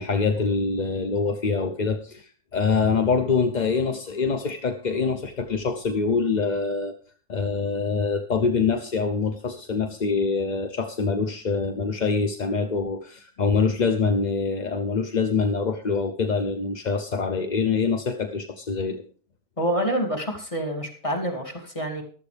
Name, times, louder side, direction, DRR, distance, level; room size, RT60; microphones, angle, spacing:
voice 1, 0.0-6.9 7.3-19.0, left 4 dB, 40° left, 6 dB, 0.7 m, -25 dB
voice 2, 19.6-22.0, right 1 dB, 20° left, 1 dB, 2.6 m, -27 dB
15.0 x 12.5 x 3.4 m, 0.43 s
omnidirectional pair, 1.6 m